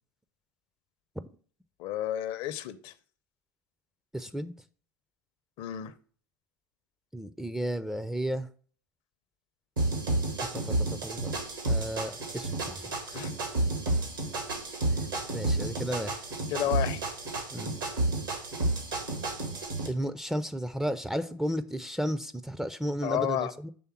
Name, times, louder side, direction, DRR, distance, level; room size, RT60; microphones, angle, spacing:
voice 1, 1.8-2.9 5.6-5.9 13.1-13.3 16.5-17.0 23.0-23.5, left 12 dB, 50° left, 13 dB, 0.6 m, -31 dB
voice 2, 4.1-4.5 7.1-8.5 10.5-11.3 11.7-12.9 15.3-16.2 17.5-17.8 19.9-23.7, equal, 5° right, 10 dB, 0.4 m, -33 dB
sound 1, 9.8-19.9, right 2 dB, 80° right, 1.8 m, -31 dB
7.0 x 3.4 x 4.4 m, 0.44 s
figure-of-eight pair, 75°, 11 cm